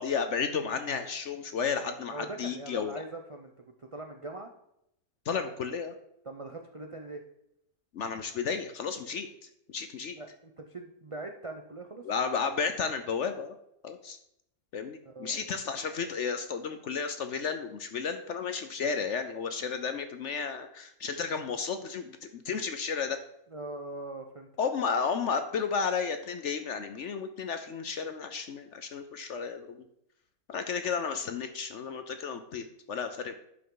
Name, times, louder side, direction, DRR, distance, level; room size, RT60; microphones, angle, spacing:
voice 1, 0.0-2.9 5.3-5.9 7.9-9.3 9.7-10.2 12.0-13.5 13.8-14.2 14.7-23.2 24.6-29.8 30.5-33.3, left 6 dB, 60° left, 8 dB, 0.8 m, -33 dB
voice 2, 2.1-3.5 3.8-4.5 6.2-7.2 10.2-12.0 15.0-15.4 23.5-24.5, right 2 dB, 55° right, 3 dB, 0.3 m, -41 dB
11.0 x 5.7 x 3.8 m, 0.79 s
omnidirectional pair, 1.7 m